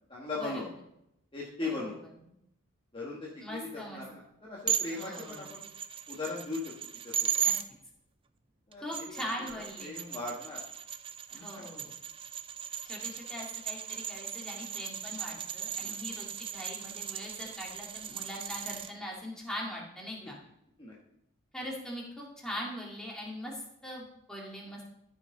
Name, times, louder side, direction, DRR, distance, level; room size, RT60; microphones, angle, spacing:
voice 1, 0.1-0.7 1.3-2.0 2.9-5.7 6.1-6.7 7.0-7.5 8.7-9.1 9.8-10.6 11.3-11.8 15.8-16.0 20.2-20.3 20.8-20.9, left 3 dB, 25° left, -4 dB, 1.3 m, -39 dB
voice 2, 3.4-4.0 4.9-5.5 7.4-7.6 8.8-9.9 11.3-11.9 12.8-20.4 21.5-24.8, equal, 5° left, -3 dB, 2.2 m, -41 dB
sound 1, 4.7-7.6 8.7-18.9, right 9 dB, 25° right, 0.3 m, -37 dB
14.0 x 5.8 x 3.9 m, 0.80 s
head